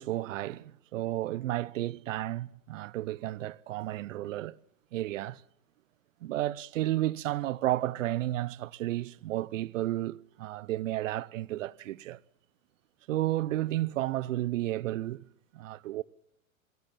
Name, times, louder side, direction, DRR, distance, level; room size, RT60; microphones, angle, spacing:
voice 1, 0.0-4.6 4.9-5.4 6.2-12.2 13.1-15.3 15.5-16.0, right 15 dB, 65° right, 0.9 m, -32 dB
26.5 x 17.5 x 7.4 m
hypercardioid pair, 95°, 41 cm